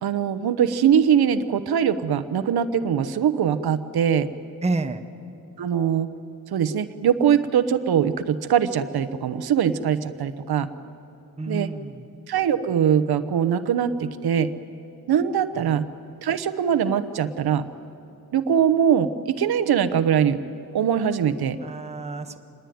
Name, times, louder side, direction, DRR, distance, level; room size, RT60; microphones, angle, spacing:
voice 1, 0.0-4.3 5.6-6.1 6.5-10.7 11.5-11.7 12.3-14.5 15.1-15.9 16.2-17.7 18.3-20.4 20.7-21.6, right 8 dB, 85° right, 11 dB, 1.0 m, -22 dB
voice 2, 4.6-5.0 11.4-11.9 21.6-22.4, right 3 dB, 15° right, 6 dB, 1.0 m, -28 dB
26.0 x 21.0 x 9.4 m, 2.7 s
wide cardioid pair, 165°, 37 cm